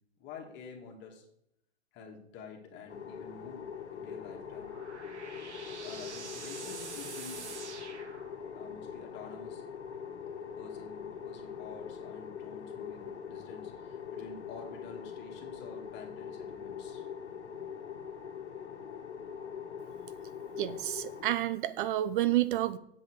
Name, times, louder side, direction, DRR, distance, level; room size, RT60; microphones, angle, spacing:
voice 1, 0.2-1.3 1.9-4.7 5.8-7.5 8.5-9.6 10.4-17.1, left 5 dB, 35° left, 1 dB, 2.4 m, -49 dB
sound 1, 2.9-21.3, left 7 dB, 85° left, 1.4 m, -43 dB
sound 2, 4.2-8.8, right 5 dB, 85° right, 1.8 m, -46 dB
voice 2, 20.6-22.8, right 14 dB, 50° right, 15 dB, 0.7 m, -29 dB
9.1 x 8.0 x 4.7 m, 0.76 s
hypercardioid pair, 125°, 33 cm